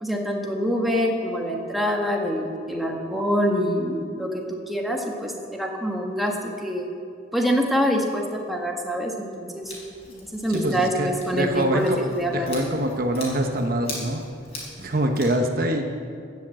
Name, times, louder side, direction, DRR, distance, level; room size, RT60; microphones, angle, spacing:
voice 1, 0.0-6.9 7.3-9.7 10.3-12.5, equal, ahead, 0 dB, 1.3 m, -25 dB
Scissors, 9.6-15.3, left 2 dB, 35° left, 4.5 m, -41 dB
voice 2, 10.5-12.0 12.3-14.2 14.8-15.8, right 1 dB, 50° right, 4 dB, 0.9 m, -25 dB
18.5 x 7.2 x 7.5 m, 2.4 s
head